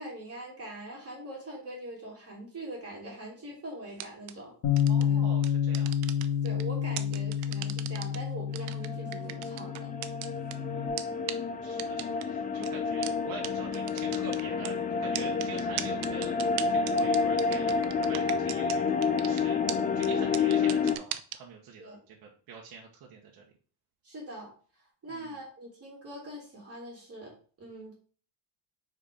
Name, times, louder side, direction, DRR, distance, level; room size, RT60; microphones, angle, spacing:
voice 1, 0.0-4.5 5.0-5.2 6.4-9.9 21.8-22.0 24.0-24.5 25.0-27.9, right 1 dB, 30° right, -3 dB, 2.5 m, -42 dB
sound 1, 3.9-4.3 4.8-5.0 5.4-6.6 7.0-8.2 8.5-10.5 11.0-11.1 11.3-11.4 11.8-12.2 12.6-12.7 13.0-13.1 13.4-13.5 13.7-14.7 15.1-18.8 19.0-19.4 19.7-19.8 20.0-20.1 20.3-21.4, right 15 dB, 75° right, 0.7 m, -36 dB
Bass guitar, 4.6-10.9, left 8 dB, 50° left, 1.8 m, -29 dB
voice 2, 4.9-5.9 10.6-16.4 16.7-19.6 19.9-23.5 25.1-25.3, right 5 dB, 45° right, -1 dB, 1.2 m, -46 dB
sound 2, 8.7-21.0, left 5 dB, 20° left, 0.4 m, -29 dB
4.8 x 4.4 x 4.9 m, 0.41 s
cardioid pair, 125°, 49 cm